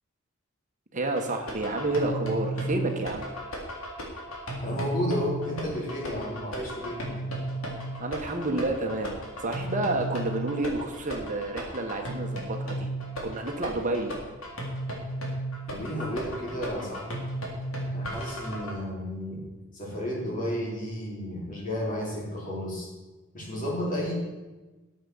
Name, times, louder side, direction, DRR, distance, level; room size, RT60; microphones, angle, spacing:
voice 1, 0.9-3.3 8.0-12.9 13.2-14.2, right 2 dB, 40° right, 3 dB, 1.4 m, -30 dB
sound 1, 1.2-18.7, right 1 dB, 90° left, 3.4 m, -34 dB
voice 2, 4.6-7.2 15.7-17.3 17.9-19.4 19.7-22.9 23.3-24.1, left 1 dB, 40° left, -3 dB, 4.3 m, -32 dB
13.5 x 8.0 x 7.2 m, 1.2 s
head